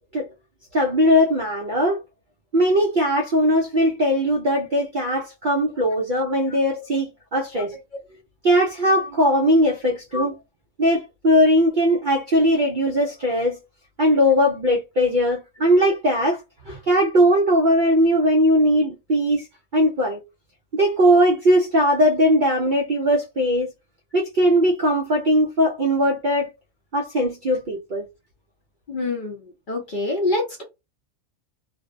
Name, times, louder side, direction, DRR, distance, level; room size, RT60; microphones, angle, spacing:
voice 1, 0.7-2.0 2.5-7.7 8.4-10.3 10.8-13.6 14.0-16.4 16.7-19.5 19.7-20.2 20.7-23.7 24.1-26.5 26.9-28.0, equal, 65° right, 0.5 m, -19 dB
voice 2, 28.9-30.6, left 2 dB, 50° left, 0.6 m, -26 dB
2.5 x 2.0 x 2.5 m
omnidirectional pair, 1.4 m